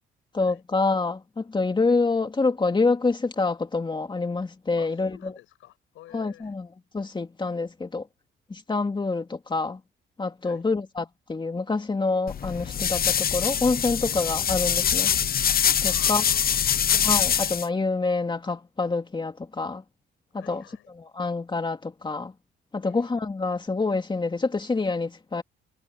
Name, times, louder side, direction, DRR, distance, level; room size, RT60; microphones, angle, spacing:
voice 1, 0.3-5.3 6.1-6.7 6.9-8.1 8.5-9.8 10.2-15.2 15.8-16.2 17.0-19.8 20.3-20.6 21.1-22.3 22.7-25.4, left 3 dB, 25° left, 2.6 m, -27 dB
voice 2, 4.8-6.5 10.4-10.6 15.8-17.4 20.3-20.9 22.8-23.1, left 15 dB, 90° left, 7.3 m, -50 dB
sound 1, 12.3-17.7, left 8 dB, 50° left, 0.9 m, -24 dB
cardioid pair, 90°, 20 cm